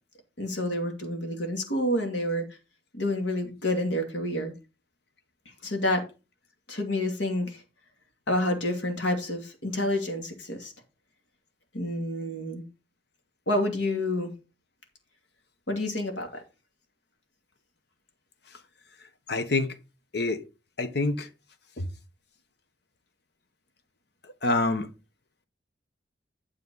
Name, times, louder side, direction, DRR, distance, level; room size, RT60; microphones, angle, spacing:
voice 1, 0.4-2.4 2.9-4.5 5.6-6.0 6.7-7.6 8.3-10.7 11.7-12.7 13.5-14.3 15.7-16.4, left 1 dB, 80° left, 2.7 m, -28 dB
voice 2, 19.3-19.7 20.1-20.4 20.8-21.3 21.8-21.9 24.4-24.9, left 2 dB, 60° left, 1.2 m, -26 dB
9.6 x 7.0 x 3.9 m
head